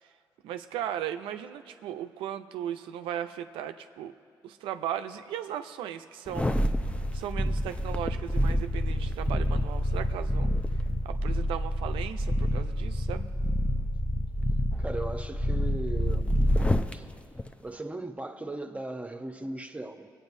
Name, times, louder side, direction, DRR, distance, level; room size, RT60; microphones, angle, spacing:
voice 1, 0.4-4.1 4.4-6.5 7.1-10.5 11.0-13.3, right 10 dB, 90° right, 9 dB, 0.4 m, -36 dB
sound 1, 6.3-16.9 17.4-17.5, left 1 dB, 15° left, 0.6 m, -28 dB
voice 2, 14.8-16.4 16.9-17.1 17.6-20.1, right 2 dB, 15° right, 5 dB, 0.8 m, -37 dB
23.0 x 8.7 x 2.6 m, 2.3 s
supercardioid pair, 50°, 9 cm